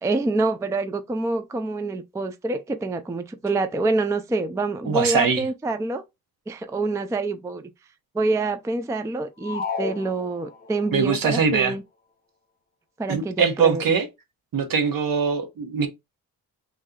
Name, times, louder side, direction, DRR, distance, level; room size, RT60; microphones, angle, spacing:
voice 1, 0.0-6.0 6.5-7.7 8.1-11.8 13.0-13.9, right 3 dB, 10° right, 0.3 m, -26 dB
voice 2, 4.9-5.4 10.9-11.7 13.1-14.0 14.5-15.9, right 6 dB, 60° right, 1.0 m, -22 dB
sound 1, 9.4-10.9, left 4 dB, 25° left, 0.7 m, -32 dB
3.2 x 2.7 x 3.6 m
cardioid pair, 105°, 37 cm